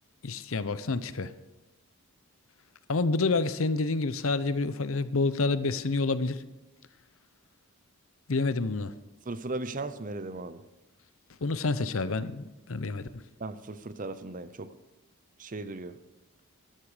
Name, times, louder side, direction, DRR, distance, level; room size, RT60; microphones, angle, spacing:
voice 1, 0.2-1.3 2.9-6.4 8.3-8.9 11.4-13.2, left 3 dB, 65° left, 0.7 m, -28 dB
voice 2, 9.3-10.6 13.4-14.7 15.4-16.0, right 2 dB, 35° right, 0.7 m, -37 dB
13.0 x 12.0 x 5.0 m
head